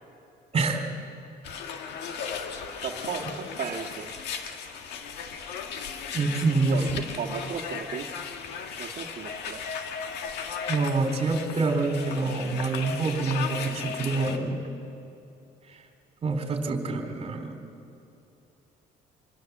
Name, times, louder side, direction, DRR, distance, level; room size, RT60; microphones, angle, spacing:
voice 1, 0.5-0.9 6.1-6.8 10.7-14.6 16.2-17.6, right 3 dB, 35° right, 4 dB, 3.7 m, -26 dB
sound 1, 1.4-14.4, left 6 dB, 80° left, 2.0 m, -36 dB
voice 2, 2.8-4.3 6.6-8.1 8.8-9.6, right 7 dB, 55° right, -3 dB, 1.8 m, -35 dB
26.5 x 21.0 x 7.4 m, 2.8 s
cardioid pair, 110°, 17 cm